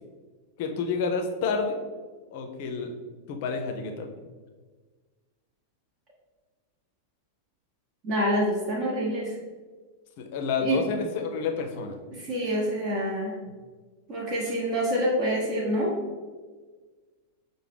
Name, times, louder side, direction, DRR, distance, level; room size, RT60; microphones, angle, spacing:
voice 1, 0.6-1.8 2.3-2.9 3.3-4.1 10.2-12.0, left 5 dB, 50° left, 4 dB, 0.5 m, -29 dB
voice 2, 8.0-9.3 10.6-10.8 12.1-13.3 14.1-16.0, equal, 35° right, -4 dB, 0.8 m, -26 dB
5.6 x 2.1 x 3.3 m, 1.4 s
figure-of-eight pair, 90°, 0 cm